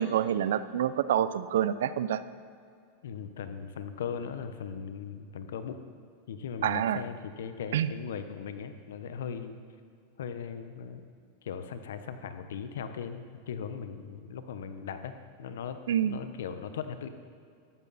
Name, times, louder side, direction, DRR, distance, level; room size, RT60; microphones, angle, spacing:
voice 1, 0.0-2.2 6.6-7.0 7.7-7.9 15.9-16.2, right 10 dB, 85° right, 15 dB, 0.6 m, -27 dB
voice 2, 3.0-5.8 6.3-9.6 10.2-11.0 11.4-17.1, left 7 dB, 85° left, 9 dB, 1.1 m, -38 dB
14.0 x 12.5 x 4.2 m, 2.3 s
supercardioid pair, 135°, 0 cm